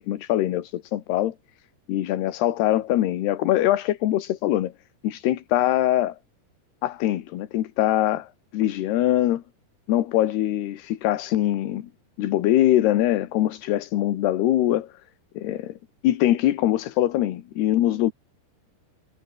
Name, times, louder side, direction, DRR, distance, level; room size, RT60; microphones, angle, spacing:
voice 1, 0.0-1.4 1.9-4.7 5.0-6.2 6.8-9.4 9.9-11.9 12.2-14.9 15.4-15.8 16.0-18.1, left 13 dB, 70° left, 3.4 m, -23 dB
omnidirectional pair, 5.0 m